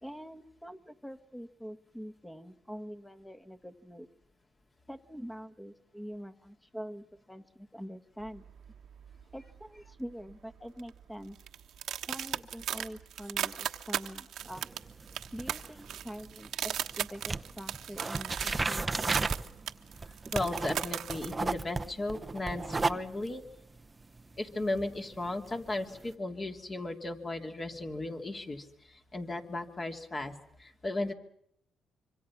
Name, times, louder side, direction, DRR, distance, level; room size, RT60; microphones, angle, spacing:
voice 1, 0.0-4.1 4.9-8.5 9.3-11.4 12.1-14.6 15.3-19.3, equal, 5° left, 7 dB, 1.6 m, -45 dB
sound 1, 8.2-9.6 9.9-10.3 10.8-21.3, right 10 dB, 75° right, 1.2 m, -37 dB
sound 2, 14.4-16.9 17.2-26.1, right 3 dB, 25° right, 0.8 m, -35 dB
voice 2, 20.3-23.4 24.4-30.3 30.6-31.1, left 2 dB, 30° left, 4 dB, 2.9 m, -35 dB
25.5 x 25.0 x 6.1 m, 0.74 s
cardioid pair, 90°, 0 cm